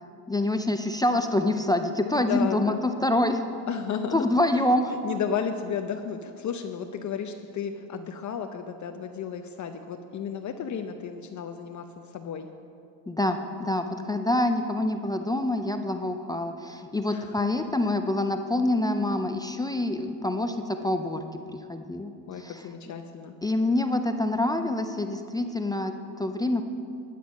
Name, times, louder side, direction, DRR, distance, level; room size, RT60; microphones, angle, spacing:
voice 1, 0.3-3.4 4.1-4.9 13.1-21.2 21.5-22.6 23.4-26.6, left 1 dB, 10° left, 6 dB, 0.4 m, -26 dB
voice 2, 2.1-2.8 3.7-4.2 4.5-12.5 13.9-14.2 17.1-17.4 22.3-23.4, left 7 dB, 35° left, 6 dB, 0.7 m, -33 dB
12.5 x 9.2 x 6.3 m, 2.6 s
supercardioid pair, 110°, 48 cm